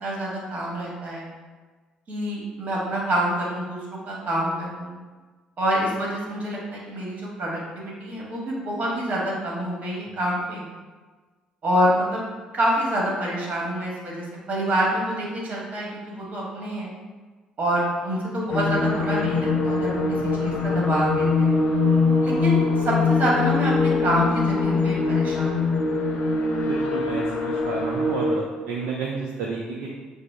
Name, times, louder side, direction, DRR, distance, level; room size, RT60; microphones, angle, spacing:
voice 1, 0.0-1.3 2.1-5.0 5.6-10.6 11.6-12.3 12.5-16.9 17.6-20.0 20.4-21.5 22.2-25.8, right 1 dB, 45° right, -4 dB, 1.4 m, -27 dB
sound 1, 18.5-28.4, left 3 dB, 55° left, 0.7 m, -22 dB
voice 2, 26.6-29.9, right 4 dB, 65° right, -3 dB, 0.5 m, -31 dB
4.8 x 2.0 x 3.4 m, 1.4 s
hypercardioid pair, 50°, 4 cm